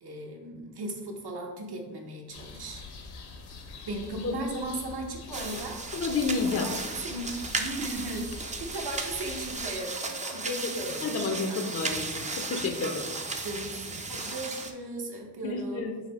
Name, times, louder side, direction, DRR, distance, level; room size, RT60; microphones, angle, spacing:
voice 1, 0.0-2.8 3.9-5.8 6.5-6.7 7.0-11.6 13.4-15.9, right 1 dB, 70° right, 2 dB, 0.9 m, -37 dB
sound 1, 2.3-9.7, left 4 dB, 70° left, 0.8 m, -45 dB
sound 2, 5.3-14.7, right 3 dB, 20° right, 0.4 m, -35 dB
voice 2, 5.9-6.7 11.0-13.1 15.4-16.0, left 4 dB, 35° left, 3 dB, 0.5 m, -30 dB
4.1 x 2.7 x 4.2 m, 1.3 s
cardioid pair, 85°, 41 cm